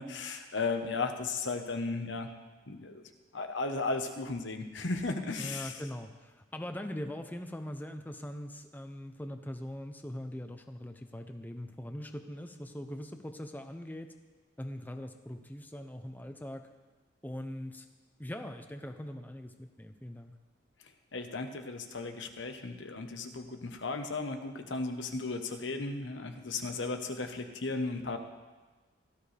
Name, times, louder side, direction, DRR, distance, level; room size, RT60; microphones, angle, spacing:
voice 1, 0.0-2.3 2.7-3.0 3.3-5.8 21.1-28.2, left 3 dB, 80° left, 6 dB, 1.1 m, -35 dB
voice 2, 5.4-14.1 14.6-16.7 17.2-17.9 18.2-20.3, left 1 dB, 10° left, 6 dB, 0.6 m, -41 dB
17.0 x 13.0 x 3.4 m, 1.3 s
head